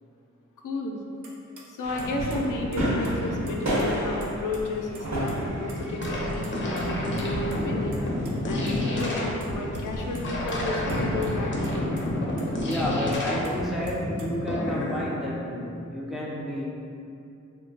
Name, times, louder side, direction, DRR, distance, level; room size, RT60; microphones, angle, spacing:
voice 1, 0.6-1.0 1.7-8.0 8.4-12.0, left 2 dB, 85° left, 0 dB, 0.5 m, -32 dB
sound 1, 1.2-1.3 1.6-1.7 2.0-3.1 3.5-4.3 4.5-4.6 4.9-5.4 5.6-6.1 6.4-7.6 7.9-8.3 8.7-8.8 9.0-9.1 9.4-9.8 10.1-10.6 10.9-11.3 11.6-11.7 12.0-12.1 12.4-13.5 13.9-14.3, right 3 dB, 80° right, 0.5 m, -45 dB
sound 2, 1.8-11.9, equal, 65° right, 1.4 m, -32 dB
sound 3, 5.6-15.0, left 1 dB, 40° left, 0.6 m, -30 dB
voice 2, 12.6-16.7, equal, ahead, -5 dB, 0.5 m, -31 dB
3.2 x 2.1 x 3.9 m, 2.6 s
wide cardioid pair, 85°, 30 cm